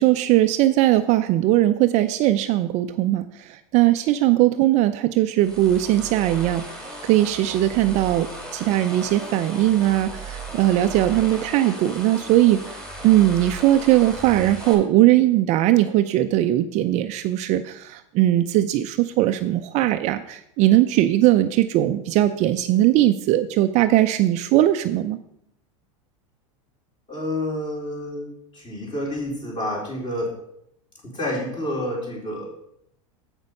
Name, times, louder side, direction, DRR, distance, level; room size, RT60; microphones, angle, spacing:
voice 1, 0.0-6.6 7.0-12.6 13.0-25.2, right 14 dB, 45° right, 9 dB, 0.5 m, -19 dB
sound 1, 5.4-14.7, right 1 dB, 5° left, 2.6 m, -36 dB
voice 2, 27.1-28.3 28.5-30.3 31.0-32.5, left 1 dB, 25° left, -2 dB, 3.9 m, -29 dB
7.9 x 6.2 x 5.3 m, 0.75 s
hypercardioid pair, 115°, 17 cm